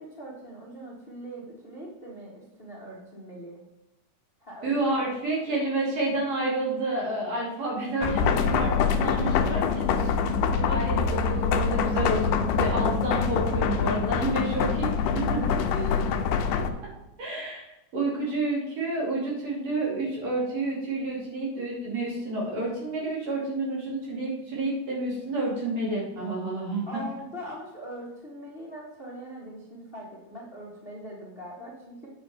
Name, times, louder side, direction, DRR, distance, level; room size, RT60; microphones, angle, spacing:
voice 1, 0.0-3.6 4.4-4.8 5.5-5.7 8.2-11.0 11.2-11.3 15.3-16.3 16.6-16.7 26.8-32.1, right 1 dB, 30° left, -4 dB, 1.1 m, -41 dB
voice 2, 4.6-9.9 10.7-15.3 17.2-17.6 17.9-27.0, right 2 dB, 55° right, -4 dB, 3.8 m, -29 dB
sound 1, 8.0-16.7, left 6 dB, 80° left, 2.1 m, -25 dB
9.4 x 6.4 x 4.3 m, 0.98 s
omnidirectional pair, 3.7 m